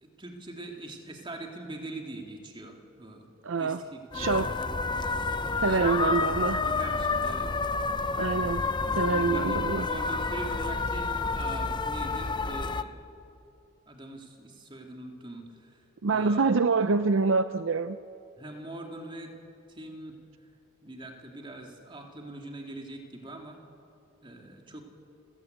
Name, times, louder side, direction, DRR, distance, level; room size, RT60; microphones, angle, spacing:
voice 1, 0.0-3.3 3.6-4.7 5.6-6.2 6.6-7.5 9.3-12.9 13.9-15.8 16.1-16.5 18.4-19.3 19.7-20.2 20.8-23.6 24.2-24.8, right 2 dB, 25° right, 2 dB, 2.7 m, -42 dB
voice 2, 3.4-3.8 4.1-4.5 5.6-6.6 8.2-8.6 9.0-9.9 16.0-18.0, right 4 dB, 70° right, 12 dB, 0.6 m, -26 dB
sound 1, 4.1-12.8, left 4 dB, 20° left, 0.6 m, -29 dB
29.5 x 16.5 x 8.1 m, 2.6 s
head